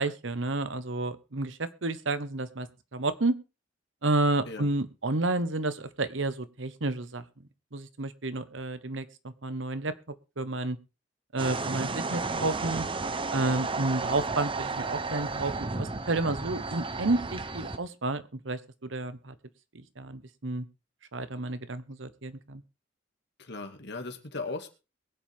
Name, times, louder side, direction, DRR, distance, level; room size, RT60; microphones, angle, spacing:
voice 1, 0.0-2.7 2.9-3.3 4.0-7.2 7.7-9.9 10.4-10.8 11.3-12.9 13.3-19.3 19.7-20.6 21.1-22.6, right 2 dB, 85° right, 12 dB, 1.2 m, -31 dB
voice 2, 4.5-4.8 23.4-24.7, left 3 dB, 65° left, 6 dB, 2.3 m, -37 dB
sound 1, 11.4-17.8, right 3 dB, 30° right, 0.9 m, -33 dB
22.0 x 7.8 x 3.6 m, 0.31 s
head